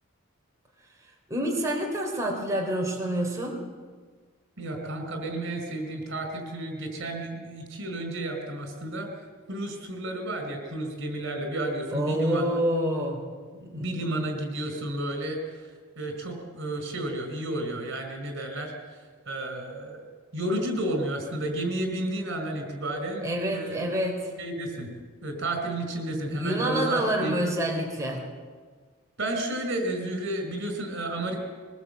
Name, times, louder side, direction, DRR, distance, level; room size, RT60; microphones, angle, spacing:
voice 1, 1.3-3.5 11.9-13.2 13.6-13.9 23.2-24.3 26.4-28.2, right 1 dB, 15° right, -1 dB, 3.4 m, -27 dB
voice 2, 4.6-9.1 9.5-12.5 13.7-15.7 16.0-19.0 19.3-20.1 20.3-23.8 24.4-24.9 25.2-27.4 29.2-31.4, right 1 dB, 65° right, 5 dB, 4.7 m, -32 dB
22.0 x 20.5 x 8.0 m, 1.5 s
head